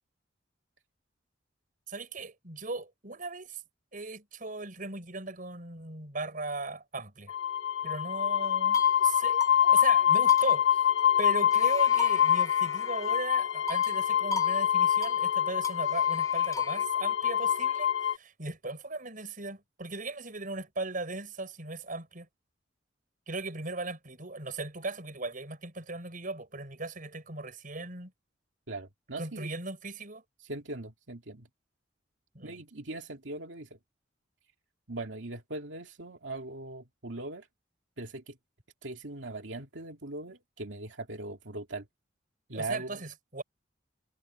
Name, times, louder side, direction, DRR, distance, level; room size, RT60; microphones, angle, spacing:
voice 1, 1.9-3.6 3.9-7.3 7.8-10.8 11.2-22.3 23.3-28.1 29.2-30.2 32.3-32.6 42.5-43.4, right 3 dB, 45° right, 6.0 m, -38 dB
sound 1, 7.3-18.1, left 9 dB, 80° left, 1.7 m, -25 dB
sound 2, 8.4-9.0 9.4-9.6 9.8-9.9 10.3-11.2 11.5-13.2 13.7-14.0 14.3-14.6 14.8-15.2 15.6-16.9, left 3 dB, 20° left, 4.7 m, -39 dB
voice 2, 28.7-29.5 30.4-31.5 32.4-33.7 34.9-37.5 38.0-38.4 38.8-41.8 42.5-43.0, right 2 dB, 85° right, 2.3 m, -40 dB
head